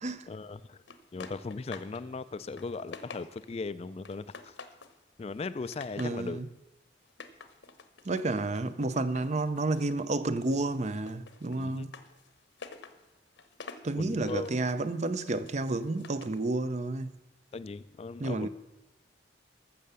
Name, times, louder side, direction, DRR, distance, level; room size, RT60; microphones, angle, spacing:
voice 1, 0.3-0.8 1.1-4.5 5.2-6.4 11.6-11.9 13.9-14.6 17.5-18.5, left 3 dB, 30° left, 0.3 m, -38 dB
sound 1, 0.9-2.0 2.4-3.6 4.0-5.0 5.3-6.2 7.0-10.1 10.4-16.4, left 4 dB, 70° left, 1.0 m, -49 dB
voice 2, 6.0-6.5 8.1-12.0 13.8-17.1 18.2-18.5, right 2 dB, 35° right, 0.5 m, -31 dB
14.0 x 6.6 x 6.9 m
head